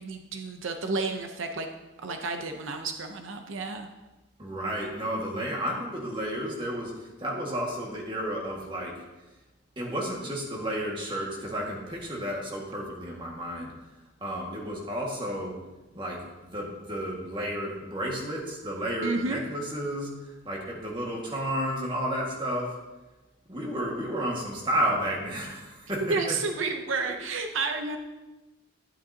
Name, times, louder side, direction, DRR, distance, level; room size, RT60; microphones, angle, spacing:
voice 1, 0.0-1.7 2.0-3.9 19.0-19.4 26.0-28.0, right 3 dB, 85° right, 5 dB, 0.7 m, -31 dB
voice 2, 4.4-9.0 9.8-13.7 14.2-15.6 15.9-16.2 16.5-22.8 23.5-26.4 26.6-26.7 27.0-27.1, equal, 25° right, -2 dB, 1.8 m, -32 dB
12.0 x 9.4 x 2.8 m, 1.1 s
head